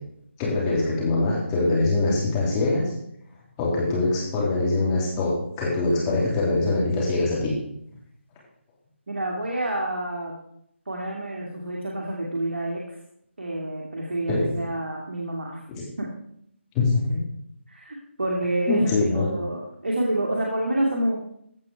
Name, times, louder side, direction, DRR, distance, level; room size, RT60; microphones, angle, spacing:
voice 1, 0.4-2.9 3.6-7.5 14.3-14.5 15.7-15.8 16.7-17.2 18.7-19.3, left 2 dB, 15° left, -5 dB, 3.4 m, -23 dB
voice 2, 9.1-10.3 10.9-12.9 13.4-15.6 16.0-16.1 17.7-18.8 19.1-21.2, right 1 dB, 60° right, -3 dB, 2.5 m, -28 dB
15.5 x 5.8 x 4.8 m, 0.72 s
figure-of-eight pair, 155°, 7 cm